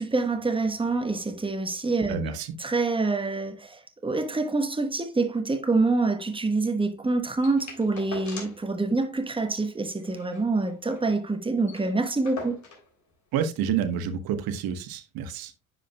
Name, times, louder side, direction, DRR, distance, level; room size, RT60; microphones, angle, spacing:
voice 1, 0.0-2.2 2.6-12.6, right 3 dB, 10° right, 1.1 m, -26 dB
voice 2, 2.1-2.5 13.3-15.5, right 7 dB, 60° right, 1.2 m, -29 dB
sound 1, 7.4-8.7 9.0-9.1 9.4-9.6 10.0-11.1 11.4-11.5 11.6-12.9 13.8-13.9, left 3 dB, 40° left, 3.2 m, -42 dB
10.0 x 5.0 x 2.2 m
hypercardioid pair, 65°, 42 cm